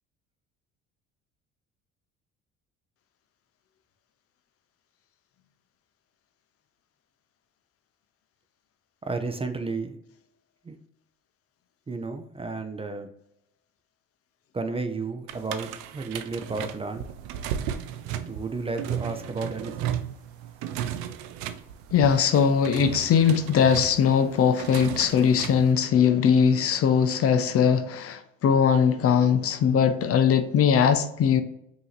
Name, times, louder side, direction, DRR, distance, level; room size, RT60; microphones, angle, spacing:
voice 1, 9.0-10.0 10.6-10.8 11.9-13.1 14.5-17.1 18.3-19.9, right 3 dB, 20° right, 0.5 m, -32 dB
sound 1, 15.3-25.7, right 10 dB, 85° right, 0.5 m, -35 dB
voice 2, 21.9-31.4, left 7 dB, 45° left, 0.6 m, -21 dB
5.4 x 2.8 x 3.1 m
supercardioid pair, 75°, 32 cm